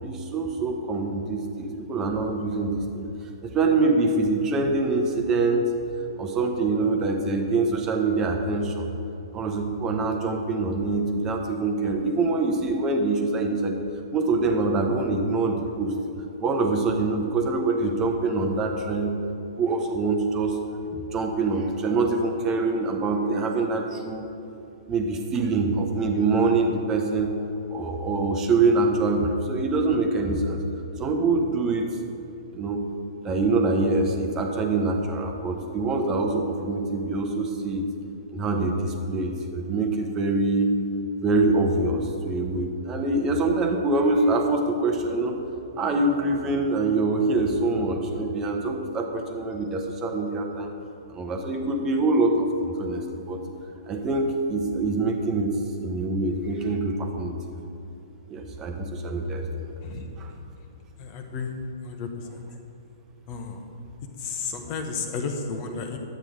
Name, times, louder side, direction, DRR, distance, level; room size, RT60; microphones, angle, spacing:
voice 1, 0.0-3.1 3.5-5.7 6.2-8.9 9.3-13.8 14.1-15.9 16.4-19.1 19.6-20.6 20.9-24.3 24.9-27.3 27.7-30.6 31.0-31.9 32.5-32.8 33.2-37.9 38.3-40.7 41.2-45.4 45.8-50.7 51.1-53.4 53.9-55.5 55.8-57.5 58.3-59.7 60.2-60.3, right 3 dB, 20° right, 4 dB, 1.0 m, -25 dB
voice 2, 61.0-61.5 61.8-62.4 63.3-63.6 64.2-66.0, left 5 dB, 35° left, 4 dB, 1.2 m, -32 dB
11.0 x 8.8 x 5.1 m, 2.9 s
figure-of-eight pair, 110°, 2 cm